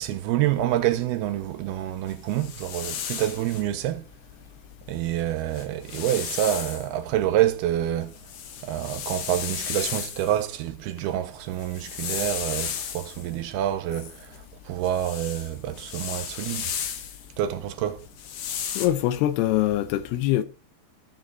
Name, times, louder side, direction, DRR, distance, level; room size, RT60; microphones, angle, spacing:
voice 1, 0.0-4.1 4.9-8.3 8.6-16.8 17.4-18.1, right 12 dB, 85° right, 2.8 m, -27 dB
sound 1, 2.1-3.6 5.0-5.1 5.4-6.9 7.5-10.5 11.4-13.3 13.9-17.3 18.0-18.9, left 8 dB, 65° left, 2.5 m, -34 dB
voice 2, 18.8-20.4, left 13 dB, 85° left, 2.9 m, -23 dB
15.0 x 6.6 x 4.0 m
omnidirectional pair, 4.5 m